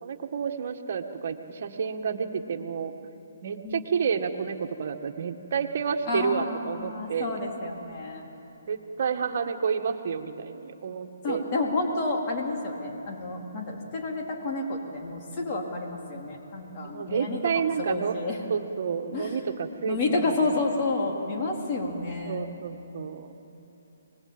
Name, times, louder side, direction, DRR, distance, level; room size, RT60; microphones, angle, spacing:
voice 1, 0.0-2.9 3.4-7.4 8.7-11.4 16.8-18.2 18.5-20.0 22.3-23.3, right 6 dB, 50° right, 5 dB, 1.8 m, -30 dB
voice 2, 6.1-8.3 11.2-18.4 19.1-19.4 19.8-22.5, left 2 dB, 35° left, -1 dB, 4.1 m, -30 dB
24.5 x 20.5 x 9.0 m, 3.0 s
hypercardioid pair, 150°, 0 cm